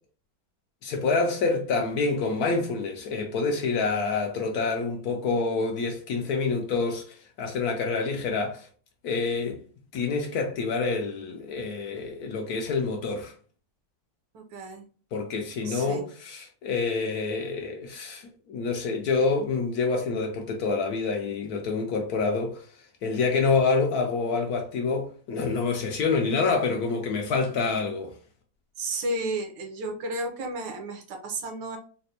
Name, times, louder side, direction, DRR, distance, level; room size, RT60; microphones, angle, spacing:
voice 1, 0.8-8.7 9.0-9.6 9.9-13.3 15.1-22.7 23.0-28.1, left 4 dB, 70° left, 0.9 m, -27 dB
voice 2, 14.3-14.8 15.6-16.1 28.8-31.8, right 2 dB, 80° right, 1.5 m, -32 dB
4.1 x 2.1 x 2.7 m
omnidirectional pair, 2.0 m